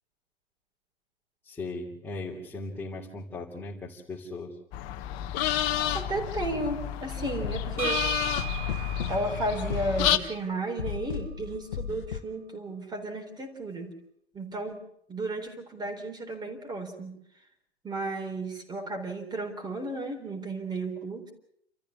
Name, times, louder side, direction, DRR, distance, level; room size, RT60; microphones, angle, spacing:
voice 1, 1.4-4.6, left 2 dB, 5° left, -5 dB, 3.2 m, -38 dB
sound 1, 4.7-10.2, left 11 dB, 35° left, 1.3 m, -30 dB
voice 2, 5.9-8.1 9.1-13.9 14.3-14.8 15.1-17.2 17.8-21.3, right 2 dB, 15° right, 5 dB, 3.9 m, -33 dB
sound 2, 6.1-6.3 7.4-10.4 10.8-12.2, left 8 dB, 55° left, 1.2 m, -37 dB
sound 3, 7.8-11.6, right 12 dB, 40° right, 5.0 m, -38 dB
30.0 x 14.0 x 7.3 m, 0.72 s
figure-of-eight pair, 105°, 30 cm